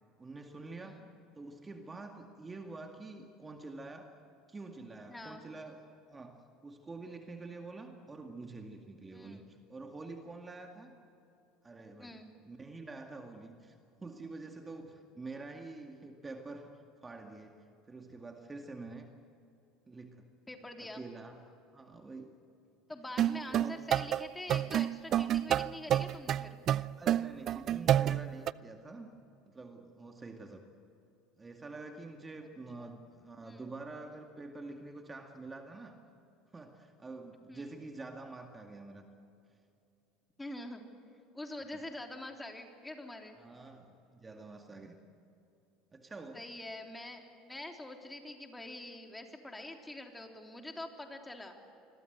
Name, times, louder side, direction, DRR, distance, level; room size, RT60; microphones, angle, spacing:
voice 1, 0.2-1.0 1.3-4.1 4.5-5.8 6.1-11.0 11.6-12.2 12.5-16.7 17.0-19.1 19.9-20.3 20.8-21.4 21.7-22.4 23.3-23.9 27.0-29.1 29.5-30.6 31.4-36.0 36.5-39.0 43.4-45.0 45.9-46.4, right 3 dB, 20° right, 4 dB, 2.1 m, -47 dB
voice 2, 5.1-5.4 9.1-9.5 12.0-12.3 20.5-21.1 22.9-26.6 32.8-32.9 33.4-33.6 37.5-37.7 40.4-40.8 41.3-43.4 46.3-51.6, left 1 dB, 10° left, 3 dB, 3.5 m, -45 dB
sound 1, 23.2-28.5, right 11 dB, 45° right, 0.5 m, -29 dB
27.5 x 22.0 x 8.1 m, 2.8 s
hypercardioid pair, 70°, 0 cm